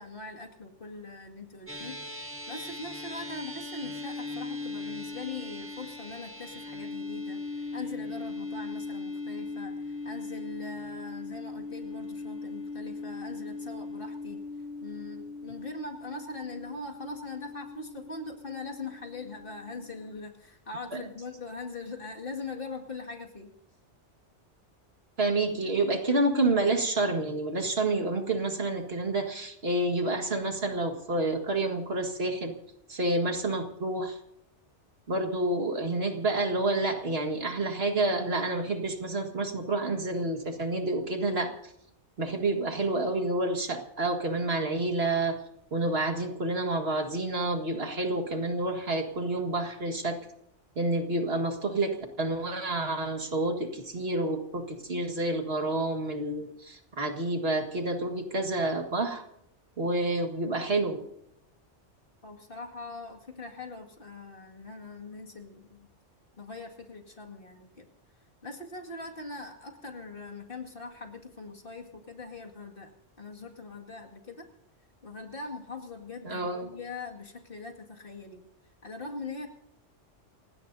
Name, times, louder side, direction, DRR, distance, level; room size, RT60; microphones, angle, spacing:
voice 1, 0.0-2.0 2.5-14.4 14.8-23.5 62.2-65.9 66.4-67.9 68.4-72.9 73.2-74.5 75.0-78.4 78.8-79.5, left 3 dB, 50° left, 2 dB, 2.3 m, -41 dB
sound 1, 1.7-20.2, left 3 dB, 10° right, 1.8 m, -39 dB
voice 2, 25.2-32.5 32.9-34.2 35.1-41.7 42.2-45.4 45.7-50.2 50.8-59.2 59.8-61.0 76.2-76.7, right 2 dB, 55° right, 4 dB, 2.0 m, -29 dB
29.0 x 17.0 x 2.7 m, 0.74 s
omnidirectional pair, 1.2 m